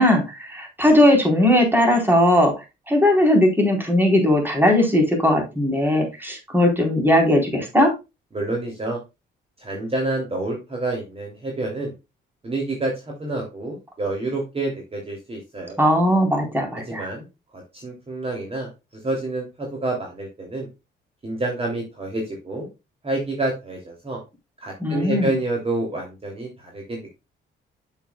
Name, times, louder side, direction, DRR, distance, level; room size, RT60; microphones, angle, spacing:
voice 1, 0.0-7.9 15.8-17.1 24.8-25.4, left 1 dB, 10° right, 2 dB, 4.0 m, -18 dB
voice 2, 8.3-9.0 9.6-11.9 12.4-15.8 16.9-17.2 17.5-18.7 19.0-20.7 21.2-22.7 23.0-24.2 24.6-27.2, right 2 dB, 30° right, 0 dB, 2.9 m, -28 dB
8.2 x 7.2 x 2.3 m, 0.25 s
cardioid pair, 90°, 20 cm